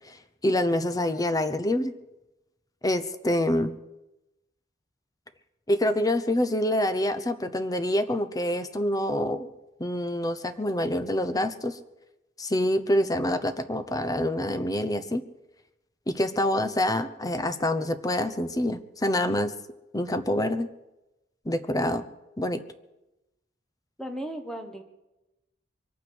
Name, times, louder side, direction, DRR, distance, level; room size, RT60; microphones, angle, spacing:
voice 1, 0.4-1.9 2.8-3.7 5.7-9.5 9.8-11.8 12.4-15.2 16.1-19.5 19.9-20.7 21.4-22.0 22.4-22.6, left 1 dB, 20° left, 11 dB, 0.8 m, -26 dB
voice 2, 24.0-24.8, right 1 dB, 5° left, 5 dB, 1.3 m, -35 dB
23.5 x 8.9 x 6.3 m, 0.96 s
head